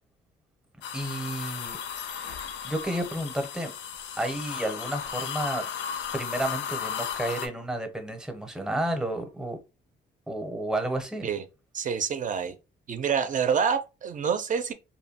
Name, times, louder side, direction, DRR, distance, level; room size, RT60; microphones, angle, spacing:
sound 1, 0.8-7.5, left 8 dB, 65° left, 0.4 m, -35 dB
voice 1, 0.9-1.8 2.0-2.4 2.6-3.7 4.2-5.6 6.1-9.6 10.3-11.3, right 1 dB, 5° right, 0.6 m, -31 dB
voice 2, 11.7-12.6 12.9-14.7, right 7 dB, 40° right, 0.4 m, -27 dB
2.7 x 2.2 x 2.7 m
cardioid pair, 90°, 20 cm